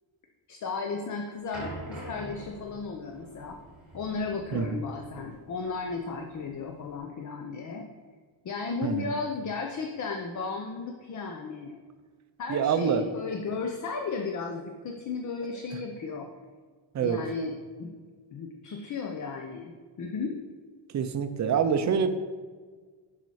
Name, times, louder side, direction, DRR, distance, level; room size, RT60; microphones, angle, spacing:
voice 1, 0.5-3.6 3.9-7.9 8.4-11.8 12.4-16.3 17.0-17.9 18.3-20.3, left 4 dB, 40° left, 3 dB, 0.6 m, -34 dB
sound 1, 1.5-6.9, right 1 dB, ahead, 2.6 m, -44 dB
voice 2, 12.5-13.0 16.9-17.2 20.9-22.1, right 7 dB, 40° right, 9 dB, 0.5 m, -26 dB
8.0 x 5.7 x 4.8 m, 1.5 s
wide cardioid pair, 180°, 47 cm